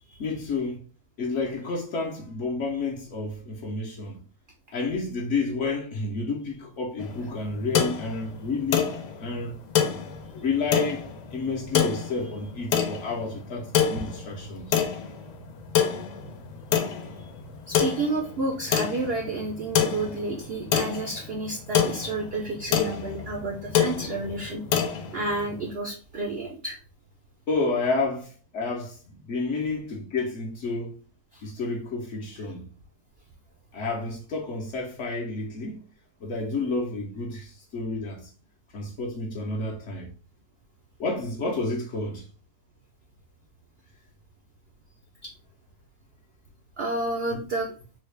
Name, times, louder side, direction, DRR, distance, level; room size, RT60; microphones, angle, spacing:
voice 1, 0.2-0.9 1.2-4.2 4.7-8.9 9.2-9.6 10.3-11.1 11.3-14.7 27.5-31.0 31.4-32.7 33.7-35.8 36.2-38.3 38.7-40.1 41.0-42.3, left 3 dB, 60° left, 0.8 m, -30 dB
sound 1, 7.0-25.7, left 8 dB, 80° left, 1.2 m, -28 dB
voice 2, 17.7-24.6 25.1-26.8 31.3-31.5 45.2-45.3 46.8-47.7, right 2 dB, 80° right, 0.5 m, -30 dB
3.8 x 2.2 x 3.2 m
omnidirectional pair, 1.7 m